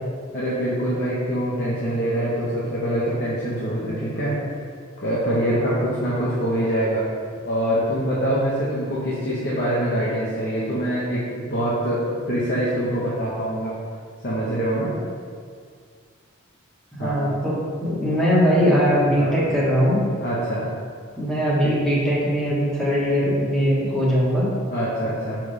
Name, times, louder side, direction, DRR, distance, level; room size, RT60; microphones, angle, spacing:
voice 1, 0.3-4.6 5.0-7.1 7.4-13.7 14.2-14.9 17.0-17.2 19.2-19.4 20.2-20.7 21.6-21.8 24.7-25.4, equal, 50° left, -8 dB, 1.3 m, -24 dB
voice 2, 17.0-20.0 21.2-24.5, equal, 5° left, -8 dB, 1.6 m, -20 dB
7.0 x 5.9 x 3.4 m, 2.1 s
head